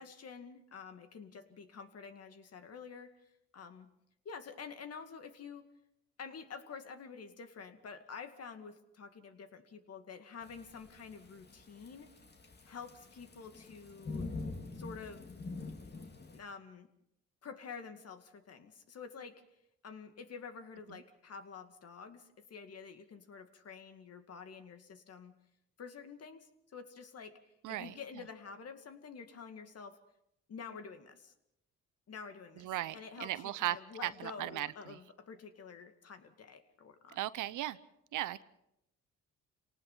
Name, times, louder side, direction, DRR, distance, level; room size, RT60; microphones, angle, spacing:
voice 1, 0.0-3.9 4.2-5.7 6.2-12.1 12.6-14.3 14.7-15.4 16.3-16.9 17.4-19.4 19.8-25.3 25.8-27.4 27.7-30.0 30.5-31.3 32.1-37.2, left 5 dB, 55° left, 8 dB, 2.3 m, -49 dB
Thunderstorm / Rain, 10.4-16.4, left 3 dB, 35° left, 2.7 m, -45 dB
voice 2, 27.6-28.0 32.6-33.8 34.0-35.0 37.1-37.8 38.1-38.4, right 14 dB, 85° right, 16 dB, 0.9 m, -37 dB
27.5 x 18.5 x 5.7 m, 0.79 s
cardioid pair, 90°, 30 cm